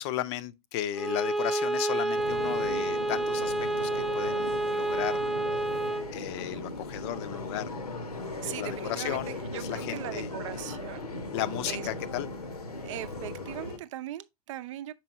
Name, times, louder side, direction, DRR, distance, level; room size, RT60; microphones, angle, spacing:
voice 1, 0.0-5.2 5.5-5.6 6.1-7.7 8.4-10.3 11.3-12.3, left 13 dB, 45° left, 0.6 m, -35 dB
Bowed string instrument, 0.9-6.1, right 2 dB, ahead, 0.3 m, -29 dB
sound 1, 2.2-13.8, left 2 dB, 80° left, 1.0 m, -38 dB
voice 2, 8.4-11.0 11.7-11.9 12.8-14.9, right 14 dB, 55° right, 0.6 m, -39 dB
6.8 x 4.6 x 3.0 m
figure-of-eight pair, 85°, 19 cm